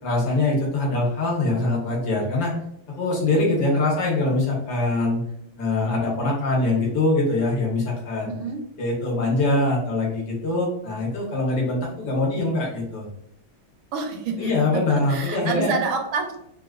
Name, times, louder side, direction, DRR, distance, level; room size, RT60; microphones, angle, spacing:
voice 1, 0.0-2.5 3.0-5.2 5.6-8.4 8.8-13.1 14.4-15.7, left 2 dB, 70° left, -3 dB, 1.6 m, -23 dB
voice 2, 8.3-8.6 13.9-16.4, right 4 dB, 80° right, 4 dB, 1.4 m, -28 dB
3.9 x 2.3 x 2.3 m, 0.75 s
omnidirectional pair, 2.2 m